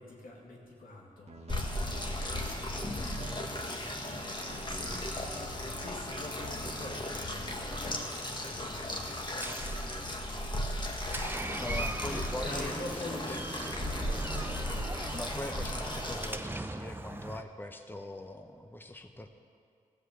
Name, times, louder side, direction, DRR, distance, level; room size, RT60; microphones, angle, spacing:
voice 1, 0.0-5.0 5.5-9.7 12.4-13.8, left 2 dB, 85° left, -3 dB, 2.1 m, -46 dB
sound 1, 1.3-8.1, right 3 dB, 50° right, 1.2 m, -48 dB
sound 2, 1.5-16.4, left 1 dB, 35° left, 1.5 m, -36 dB
Door, 8.7-17.4, right 2 dB, 15° right, 0.6 m, -41 dB
voice 2, 11.6-13.4 15.1-19.3, left 1 dB, 15° left, 5 dB, 0.9 m, -42 dB
15.0 x 5.0 x 7.9 m, 2.2 s
cardioid pair, 45°, 14 cm